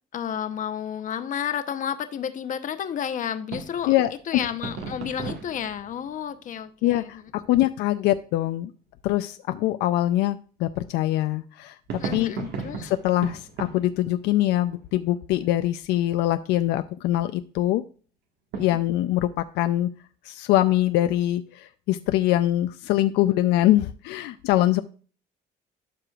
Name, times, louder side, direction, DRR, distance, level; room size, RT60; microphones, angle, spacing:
voice 1, 0.1-3.9 4.3-7.1 12.0-12.9 18.7-18.8, left 9 dB, 50° left, 10 dB, 0.8 m, -31 dB
sound 1, 3.5-7.9 11.9-15.3 15.6-15.7 18.5-19.1, right 5 dB, 80° right, 1.6 m, -38 dB
voice 2, 3.9-4.4 6.8-8.7 9.0-11.7 12.1-12.3 12.8-17.8 18.6-19.9 20.3-24.8, left 14 dB, 85° left, 11 dB, 0.4 m, -23 dB
12.0 x 4.9 x 2.4 m, 0.39 s
cardioid pair, 110°, 17 cm